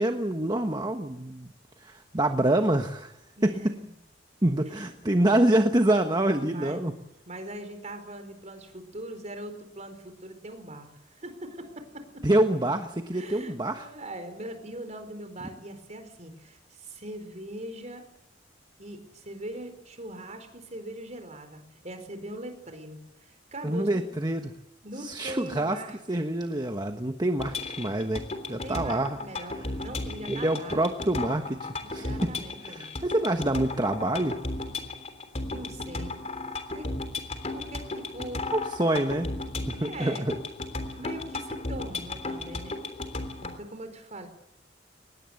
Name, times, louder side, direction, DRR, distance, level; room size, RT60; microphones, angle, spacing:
voice 1, 0.0-1.5 1.8-3.1 3.4-3.6 4.4-6.9 12.2-13.9 23.6-24.5 25.0-25.8 26.1-28.2 28.5-29.2 30.3-32.3 32.6-34.4 38.5-39.3 39.7-40.3, right 1 dB, 25° right, 6 dB, 1.3 m, -26 dB
voice 2, 3.4-3.9 4.6-5.2 6.4-6.8 7.3-10.9 11.2-12.2 13.1-18.0 18.8-24.0 24.8-26.0 28.6-30.8 31.8-32.9 35.5-36.2 36.7-36.9 37.5-38.5 39.8-40.3 41.0-42.8 43.4-44.3, right 1 dB, 40° right, 7 dB, 4.5 m, -41 dB
sound 1, 27.4-43.6, left 2 dB, 35° left, 3.4 m, -35 dB
24.0 x 20.5 x 7.8 m, 0.86 s
head